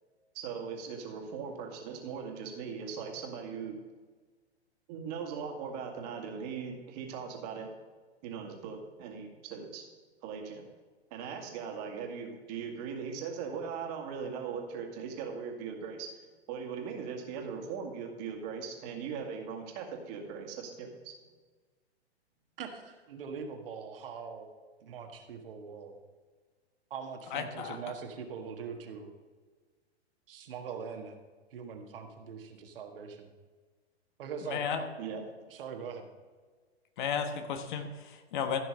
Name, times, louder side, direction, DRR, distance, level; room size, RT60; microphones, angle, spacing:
voice 1, 0.3-3.8 4.9-7.7 8.2-9.8 10.2-10.7 11.1-16.1 16.5-21.1 35.0-35.2, right 6 dB, 40° right, 3 dB, 2.0 m, -39 dB
voice 2, 22.6-24.5 24.8-25.9 26.9-29.1 30.3-31.2 31.5-33.3 34.2-34.9 35.5-36.1, right 6 dB, 55° right, 4 dB, 1.6 m, -42 dB
voice 3, 27.3-27.8 34.5-34.8 37.0-38.6, left 7 dB, 45° left, 7 dB, 1.3 m, -33 dB
14.5 x 6.1 x 5.2 m, 1.4 s
figure-of-eight pair, 110°, 33 cm